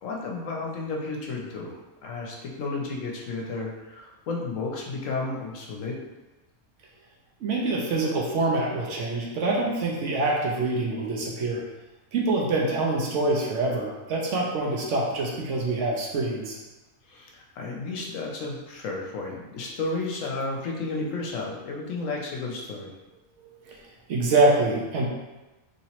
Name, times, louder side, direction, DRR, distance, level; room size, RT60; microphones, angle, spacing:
voice 1, 0.0-6.0 17.1-22.9, left 3 dB, 70° left, -1 dB, 1.0 m, -32 dB
voice 2, 7.4-11.6 12.1-16.6 23.7-23.8 24.1-25.1, right 2 dB, 65° right, -2 dB, 0.9 m, -25 dB
3.0 x 2.9 x 2.8 m, 1.1 s
omnidirectional pair, 1.4 m